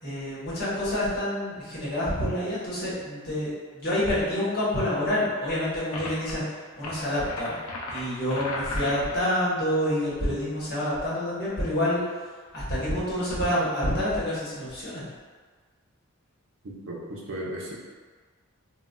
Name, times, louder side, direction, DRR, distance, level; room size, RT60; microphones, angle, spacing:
voice 1, 0.0-6.4 6.8-7.6 7.9-12.0 12.5-15.1, left 1 dB, 45° left, -9 dB, 1.0 m, -27 dB
sound 1, 5.9-6.3 6.8-9.3, left 2 dB, 85° left, 0.5 m, -35 dB
voice 2, 16.6-17.8, right 1 dB, 65° right, -3 dB, 0.6 m, -36 dB
3.8 x 2.2 x 2.2 m, 1.5 s
head